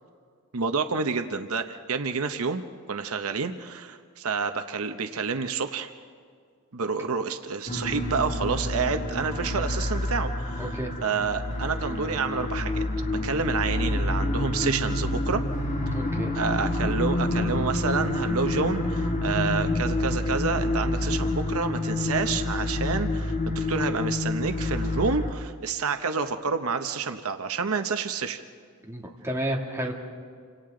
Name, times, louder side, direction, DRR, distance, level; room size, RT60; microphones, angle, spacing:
voice 1, 0.5-2.6 2.9-5.9 6.7-10.8 11.0-12.8 13.2-15.4 15.9-16.0 16.3-28.4, right 5 dB, 70° right, 7 dB, 0.9 m, -29 dB
sound 1, 7.7-25.3, left 2 dB, 35° left, 1.8 m, -28 dB
voice 2, 10.6-10.9 15.9-16.3 28.8-29.9, right 1 dB, 10° right, -1 dB, 2.3 m, -31 dB
29.0 x 26.0 x 3.8 m, 2.2 s
head